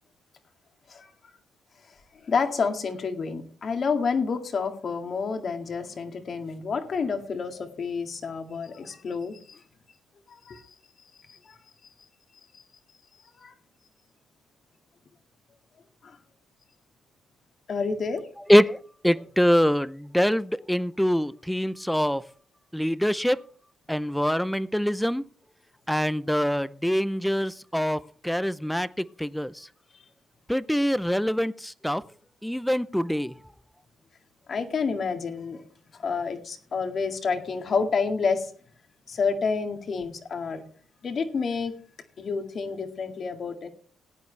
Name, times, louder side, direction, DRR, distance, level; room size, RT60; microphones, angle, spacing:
voice 1, 1.8-9.6 10.3-11.6 12.5-12.6 13.1-13.5 16.0-16.2 17.7-18.3 29.9-30.1 34.5-35.6 35.9-38.5 39.1-40.6 41.0-41.8 42.2-43.7, left 5 dB, 50° left, 5 dB, 2.1 m, -29 dB
voice 2, 19.0-22.2 22.7-23.4 23.9-25.2 25.9-28.9 29.2-29.5 30.5-32.0 32.4-33.3, equal, ahead, 17 dB, 0.6 m, -24 dB
17.5 x 9.3 x 3.3 m, 0.43 s
cardioid pair, 90°, 0 cm